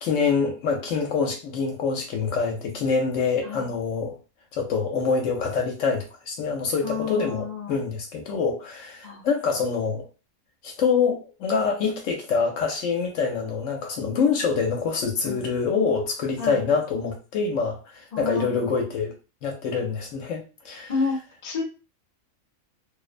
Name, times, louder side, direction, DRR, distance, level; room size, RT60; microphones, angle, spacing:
voice 1, 0.0-4.2 4.5-10.1 10.6-19.1 19.4-20.9, left 5 dB, 70° left, 2 dB, 0.9 m, -25 dB
voice 2, 6.8-7.8 9.0-9.2 15.2-15.4 16.4-16.7 18.1-18.7 20.9-21.6, left 5 dB, 45° left, 0 dB, 0.6 m, -30 dB
2.4 x 2.0 x 2.4 m, 0.33 s
omnidirectional pair, 1.4 m